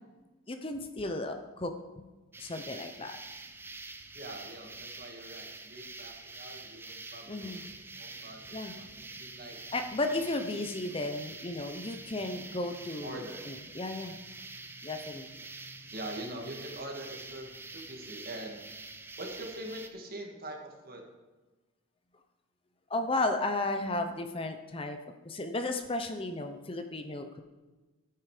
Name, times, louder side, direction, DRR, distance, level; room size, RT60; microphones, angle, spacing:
voice 1, 0.5-2.0 2.4-3.2 7.3-7.6 8.5-8.7 9.7-13.2 13.5-14.1 14.8-15.3 22.9-25.0 25.2-27.4, left 2 dB, 25° left, 6 dB, 0.7 m, -34 dB
sound 1, 2.3-19.9, right 3 dB, 10° right, 0.6 m, -46 dB
voice 2, 4.1-7.5 8.0-8.4 8.7-9.6 13.0-13.5 15.9-18.7 19.2-21.0, right 1 dB, 45° right, 2 dB, 2.0 m, -43 dB
12.5 x 9.3 x 5.0 m, 1.2 s
head